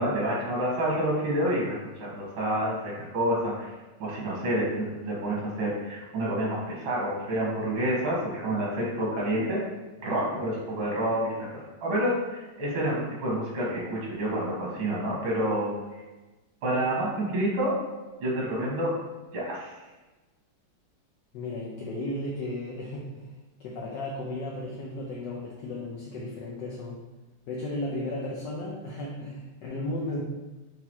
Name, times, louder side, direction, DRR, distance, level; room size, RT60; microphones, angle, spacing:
voice 1, 0.0-3.7 4.0-9.6 10.0-11.5 11.8-15.7 16.6-17.8 18.2-18.9 19.3-19.7, right 1 dB, 85° right, -4 dB, 2.0 m, -28 dB
voice 2, 21.3-23.3 23.6-27.0 27.5-30.2, left 1 dB, 70° left, -3 dB, 1.1 m, -34 dB
4.8 x 3.1 x 2.8 m, 1.1 s
omnidirectional pair, 2.3 m